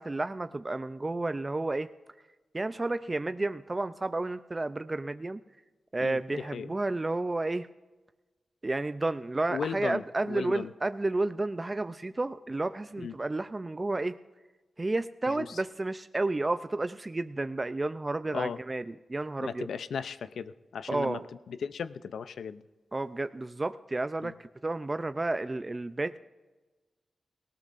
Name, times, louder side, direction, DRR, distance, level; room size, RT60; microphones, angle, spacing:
voice 1, 0.0-1.9 2.5-5.4 5.9-7.7 8.6-14.1 14.8-18.8 19.1-19.7 20.9-21.2 22.9-26.2, right 2 dB, 25° right, 11 dB, 0.4 m, -31 dB
voice 2, 6.0-6.7 9.5-10.7 13.0-13.1 15.3-15.6 18.3-18.6 19.4-21.2 21.5-22.6 24.2-24.3, left 6 dB, 85° left, 13 dB, 0.5 m, -36 dB
18.5 x 18.0 x 2.5 m, 1.2 s
wide cardioid pair, 85°, 0 cm